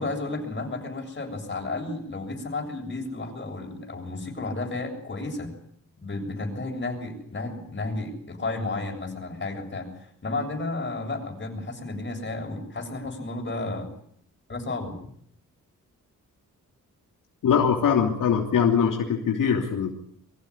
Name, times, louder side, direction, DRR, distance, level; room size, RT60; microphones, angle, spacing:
voice 1, 0.0-5.5 6.0-13.9 14.5-15.0, left 2 dB, 35° left, 2 dB, 7.5 m, -32 dB
voice 2, 17.4-19.9, left 7 dB, 90° left, 2 dB, 3.0 m, -22 dB
23.5 x 15.5 x 10.0 m, 0.65 s
cardioid pair, 85°, 31 cm